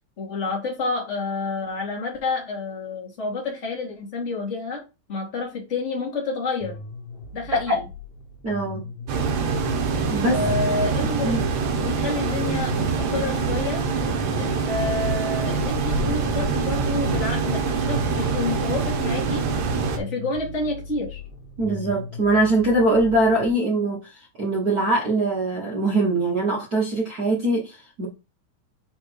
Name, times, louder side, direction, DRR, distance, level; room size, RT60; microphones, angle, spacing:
voice 1, 0.2-4.8 5.1-6.8 7.3-7.9 10.3-11.4 11.8-13.8 14.4-17.6 17.9-19.4 20.0-21.2, left 3 dB, 25° left, 2.0 m, -29 dB
sound 1, 6.6-23.5, left 2 dB, 70° left, 2.4 m, -38 dB
voice 2, 8.4-8.8 10.1-10.4 11.2-11.4 21.6-28.1, right 2 dB, 85° right, 0.8 m, -22 dB
sound 2, 9.1-20.0, right 4 dB, 65° right, 1.8 m, -24 dB
5.5 x 4.3 x 4.7 m
omnidirectional pair, 4.1 m